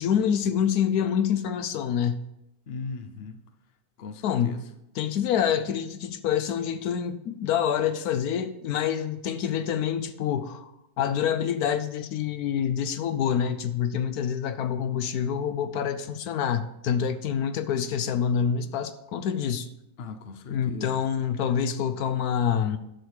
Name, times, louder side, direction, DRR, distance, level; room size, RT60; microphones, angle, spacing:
voice 1, 0.0-2.2 4.2-4.6 5.0-19.7 20.5-22.8, left 8 dB, 75° left, 1.1 m, -27 dB
voice 2, 2.7-3.4 4.0-4.6 20.0-21.0, left 4 dB, 50° left, 0.9 m, -38 dB
10.5 x 7.0 x 4.8 m
omnidirectional pair, 1.6 m